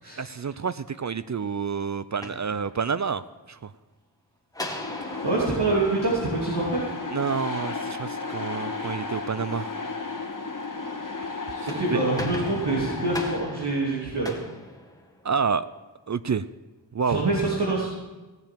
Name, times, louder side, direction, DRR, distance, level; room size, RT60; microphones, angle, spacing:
voice 1, 0.2-3.2 3.5-3.7 7.1-9.7 11.6-12.0 15.2-15.7 16.1-16.5 16.9-17.2, right 6 dB, 40° right, 15 dB, 0.5 m, -28 dB
sound 1, 2.0-3.2 4.5-7.0 11.4-15.5, left 1 dB, 10° left, 2.1 m, -39 dB
sound 2, 4.8-13.4, left 4 dB, 45° left, 2.2 m, -34 dB
voice 2, 5.2-6.8 7.2-7.3 11.0-14.4 17.0-17.9, right 2 dB, 65° right, -4 dB, 3.1 m, -26 dB
17.5 x 7.4 x 7.6 m, 1.2 s
cardioid pair, 45°, 44 cm